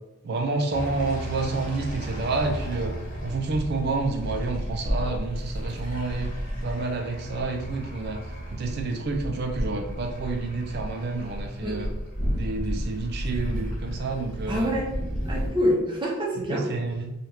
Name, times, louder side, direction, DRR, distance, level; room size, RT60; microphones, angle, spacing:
voice 1, 0.2-8.3 8.5-11.9 12.3-14.7 16.5-17.1, right 3 dB, 50° right, 3 dB, 0.3 m, -29 dB
sound 1, 0.7-15.5, equal, 40° left, 0.9 m, -33 dB
voice 2, 11.6-11.9 14.5-14.9 15.3-16.7, equal, 20° right, -3 dB, 0.7 m, -26 dB
2.8 x 2.3 x 3.3 m, 0.97 s
head